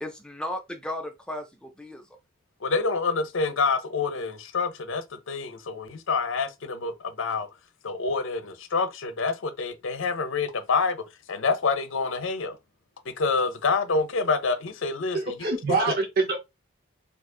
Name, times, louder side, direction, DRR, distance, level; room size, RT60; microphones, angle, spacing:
voice 1, 0.0-2.1, left 1 dB, 5° left, 0.4 m, -35 dB
voice 2, 2.6-7.5 7.8-12.6 13.1-15.8, left 4 dB, 70° left, 0.6 m, -27 dB
voice 3, 15.1-16.4, right 3 dB, 45° right, 0.6 m, -25 dB
2.7 x 2.4 x 3.7 m
head